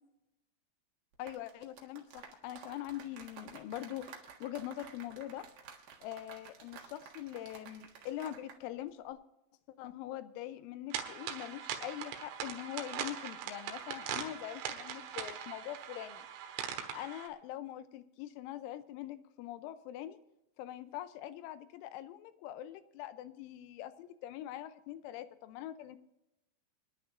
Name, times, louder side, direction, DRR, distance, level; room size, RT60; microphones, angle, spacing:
sound 1, 1.1-8.6 8.9-9.1, right 6 dB, 60° right, 3.0 m, -53 dB
voice 1, 1.2-5.5 6.0-9.2 9.8-16.3 16.9-20.2 20.6-26.0, left 13 dB, 80° left, 12 dB, 3.0 m, -43 dB
sound 2, 10.9-17.3, right 9 dB, 85° right, 4.0 m, -41 dB
25.5 x 11.0 x 2.5 m, 0.89 s
omnidirectional pair, 5.8 m